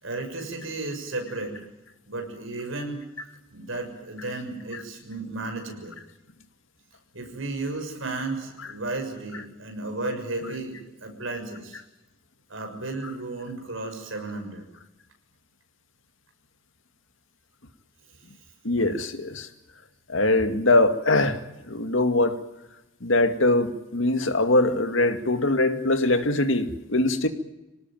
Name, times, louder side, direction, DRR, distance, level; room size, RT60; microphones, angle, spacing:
voice 1, 0.0-1.5 2.1-3.0 3.5-6.0 7.1-10.7 11.0-11.8 12.5-14.6, right 2 dB, 70° right, 4 dB, 6.6 m, -33 dB
voice 2, 18.6-19.5 20.1-21.4 21.7-22.4 23.0-27.3, left 2 dB, 70° left, 8 dB, 2.2 m, -22 dB
26.0 x 19.0 x 9.3 m, 0.98 s
head